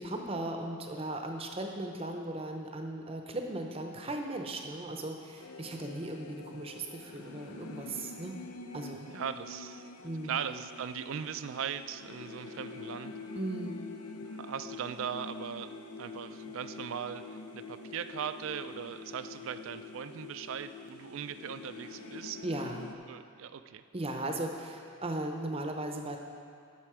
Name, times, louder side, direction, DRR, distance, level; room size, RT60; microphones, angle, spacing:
voice 1, 0.0-8.3 8.7-9.1 10.0-10.4 13.3-13.8 22.4-22.9 23.9-26.2, right 1 dB, 25° right, 3 dB, 0.6 m, -37 dB
sound 1, 5.4-23.0, left 3 dB, 85° left, 0.6 m, -46 dB
voice 2, 9.1-13.1 14.2-15.7 16.0-17.2 17.5-22.5 23.1-23.8, right 8 dB, 65° right, 11 dB, 0.3 m, -39 dB
10.0 x 6.7 x 4.9 m, 2.3 s
head